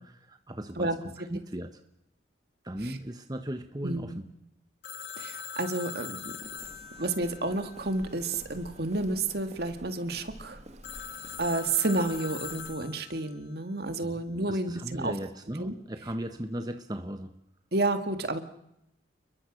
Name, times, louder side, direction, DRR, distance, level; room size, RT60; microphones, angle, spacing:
voice 1, 0.0-1.8 2.6-4.2 14.0-14.2 14.5-17.3, right 1 dB, 20° right, 7 dB, 1.1 m, -37 dB
voice 2, 3.8-4.2 5.2-6.5 7.0-10.6 11.4-15.1 15.6-15.7 17.7-18.4, right 2 dB, 55° right, 8 dB, 2.1 m, -30 dB
Telephone, 4.8-8.5 10.8-13.4, left 7 dB, 70° left, 1.9 m, -42 dB
Walk footsteps, 6.4-12.7, right 1 dB, 35° right, 1.9 m, -50 dB
30.0 x 22.0 x 6.4 m, 0.82 s
head